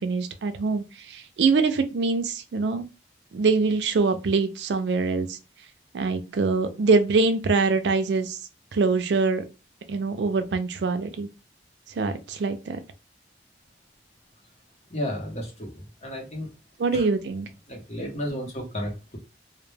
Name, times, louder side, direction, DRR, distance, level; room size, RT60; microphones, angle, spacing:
voice 1, 0.0-2.8 3.3-5.4 5.9-8.4 8.7-9.4 9.9-11.3 11.9-12.8 16.8-17.5, right 4 dB, 75° right, 0.4 m, -24 dB
voice 2, 14.9-16.5 16.9-17.1 17.7-19.2, equal, 40° left, 0.8 m, -33 dB
2.1 x 2.1 x 3.2 m
head